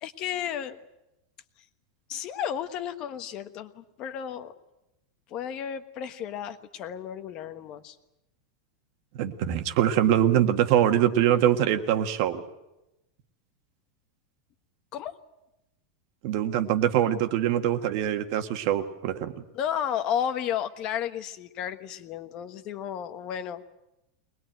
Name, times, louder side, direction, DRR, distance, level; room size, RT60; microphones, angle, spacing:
voice 1, 0.0-0.8 2.1-4.5 5.3-8.0 14.9-15.1 19.5-23.6, left 9 dB, 35° left, 9 dB, 1.3 m, -33 dB
voice 2, 9.2-12.4 16.2-19.3, right 11 dB, 50° right, 8 dB, 1.6 m, -23 dB
22.5 x 20.5 x 9.1 m, 0.92 s
supercardioid pair, 160°, 2 cm